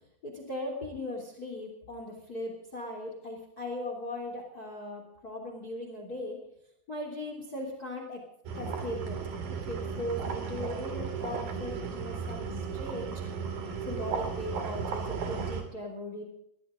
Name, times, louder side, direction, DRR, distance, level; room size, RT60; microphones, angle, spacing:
voice 1, 0.2-6.4 6.9-8.2 8.5-9.2 9.5-13.2 13.8-16.2, left 1 dB, 25° left, 2 dB, 3.3 m, -38 dB
sound 1, 8.5-15.6, right 6 dB, 65° right, 4.0 m, -35 dB
22.5 x 15.5 x 3.8 m, 0.78 s
omnidirectional pair, 4.4 m